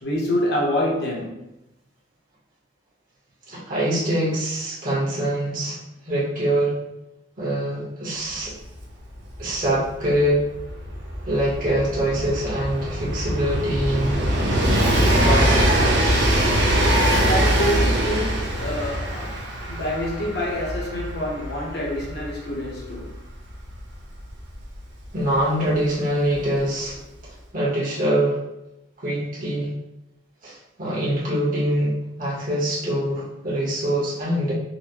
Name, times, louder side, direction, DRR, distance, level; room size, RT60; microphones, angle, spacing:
voice 1, 0.0-1.5 17.3-23.1, left 1 dB, 60° left, 0.9 m, -27 dB
voice 2, 3.5-5.8 6.0-6.7 7.4-8.5 9.4-10.4 11.3-14.2 15.2-15.5 25.1-27.0 27.5-28.4 29.0-29.7 30.4-34.5, right 1 dB, 45° right, 1.2 m, -24 dB
Train, 8.4-8.5 8.7-25.3 26.3-26.4, right 1 dB, 70° right, 0.6 m, -23 dB
4.0 x 2.2 x 3.0 m
head